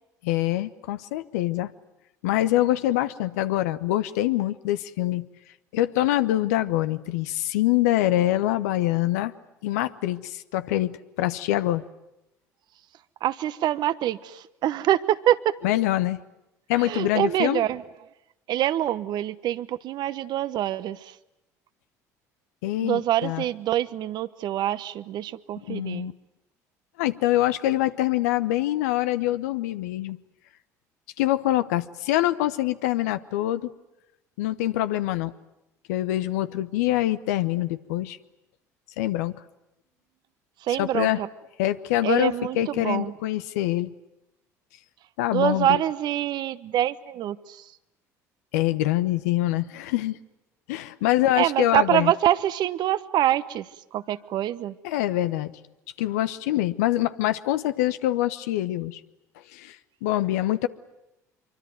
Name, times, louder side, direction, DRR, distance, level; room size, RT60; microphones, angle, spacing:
voice 1, 0.2-1.7 2.2-5.3 5.7-9.3 9.6-11.8 15.6-16.2 16.7-17.7 22.6-23.4 25.7-26.1 27.0-30.2 31.2-33.7 34.4-35.3 35.9-38.2 39.0-39.3 40.8-41.2 41.6-43.9 45.2-45.8 48.5-50.2 50.7-52.1 54.8-55.5 56.0-59.0 59.5-59.8 60.0-60.7, left 14 dB, 75° left, 13 dB, 1.0 m, -25 dB
voice 2, 13.2-15.5 16.8-17.8 18.5-21.0 22.8-26.1 40.7-41.3 42.0-43.2 45.3-47.6 51.4-53.7 53.9-54.7, right 12 dB, 55° right, 14 dB, 1.0 m, -25 dB
25.0 x 24.0 x 9.4 m, 0.91 s
hypercardioid pair, 60°, 9 cm